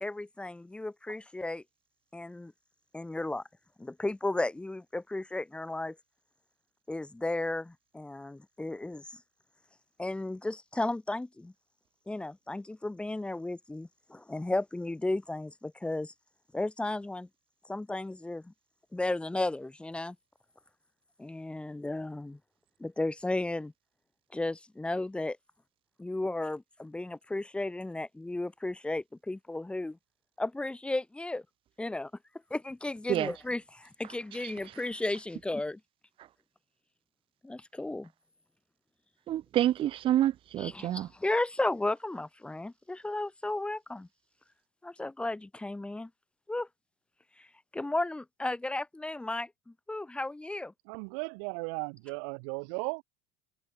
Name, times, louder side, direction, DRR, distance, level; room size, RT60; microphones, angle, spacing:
voice 1, 0.0-1.6 2.1-2.5 2.9-3.4 3.8-6.0 6.9-9.2 10.0-11.5 12.1-16.1 16.5-17.3 17.7-18.5 18.9-20.2 21.2-22.4 22.8-23.7 24.3-25.4 26.0-30.0 30.4-31.4 31.8-32.1 32.5-35.8 37.4-38.1 40.6-44.1 44.8-46.1 46.5-46.7 47.4-47.5 47.7-50.7, left 2 dB, 5° left, 2.0 m, -34 dB
voice 2, 39.3-41.1, right 12 dB, 35° right, 0.6 m, -28 dB
voice 3, 50.9-53.0, right 39 dB, 70° right, 5.2 m, -36 dB
supercardioid pair, 140°, 16 cm